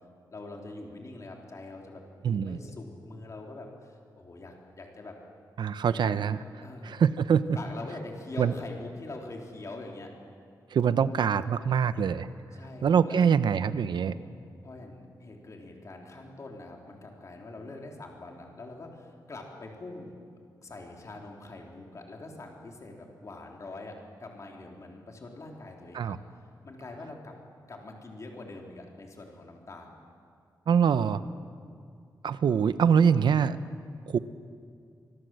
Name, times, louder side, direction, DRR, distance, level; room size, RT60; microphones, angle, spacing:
voice 1, 0.3-5.2 5.8-6.2 6.6-6.9 7.5-10.1 12.5-13.4 14.0-14.3 14.6-20.2 20.6-26.2 26.6-27.3 27.7-29.9 30.8-31.2, left 2 dB, 45° left, 1 dB, 3.6 m, -44 dB
voice 2, 2.2-2.6 5.6-6.4 6.8-7.6 8.4-8.5 10.7-12.3 12.8-14.1 25.9-26.2 30.7-31.2 32.2-33.6 34.1-34.2, right 7 dB, 85° right, 13 dB, 0.8 m, -24 dB
25.0 x 21.5 x 7.8 m, 2.3 s
wide cardioid pair, 145°, 8 cm